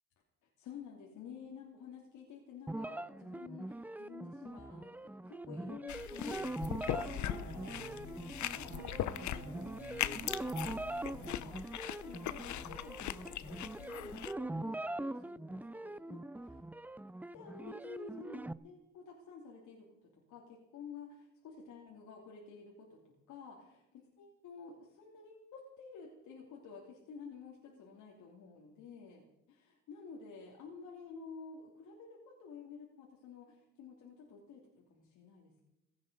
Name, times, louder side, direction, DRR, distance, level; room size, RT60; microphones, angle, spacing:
voice 1, 0.4-16.6 17.3-29.2 29.5-35.6, left 5 dB, 85° left, -1 dB, 2.8 m, -52 dB
sound 1, 2.7-18.5, right 1 dB, 5° right, 0.5 m, -42 dB
sound 2, 5.9-14.3, left 12 dB, 70° left, 0.8 m, -40 dB
sound 3, 6.3-11.3, right 2 dB, 55° right, 5.2 m, -51 dB
17.0 x 14.5 x 5.4 m, 0.93 s
cardioid pair, 90°, 30 cm